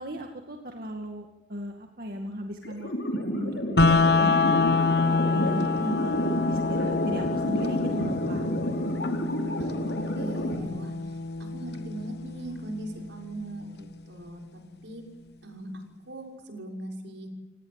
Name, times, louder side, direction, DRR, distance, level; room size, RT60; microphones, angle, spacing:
voice 1, 0.0-6.1 6.5-8.5, equal, 55° right, 3 dB, 2.1 m, -37 dB
sound 1, 2.6-10.6, equal, 85° left, 5.9 m, -30 dB
sound 2, 3.8-13.8, left 3 dB, 60° left, 1.2 m, -27 dB
voice 2, 10.1-15.0 15.4-15.7 16.1-17.3, right 1 dB, 80° right, 1 dB, 6.2 m, -40 dB
30.0 x 18.0 x 8.9 m, 1.0 s
head